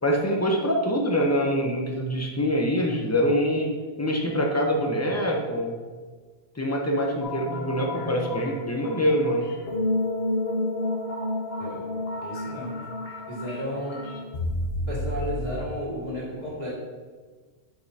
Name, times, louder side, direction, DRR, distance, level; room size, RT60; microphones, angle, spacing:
voice 1, 0.0-3.7 4.0-5.8 6.6-9.5, equal, 15° left, 1 dB, 0.8 m, -24 dB
sound 1, 7.2-15.6, left 1 dB, 60° left, 1.1 m, -31 dB
voice 2, 12.2-12.8 13.3-14.0 14.9-16.7, equal, 40° right, -6 dB, 2.1 m, -33 dB
10.5 x 5.2 x 2.9 m, 1.4 s
omnidirectional pair, 1.1 m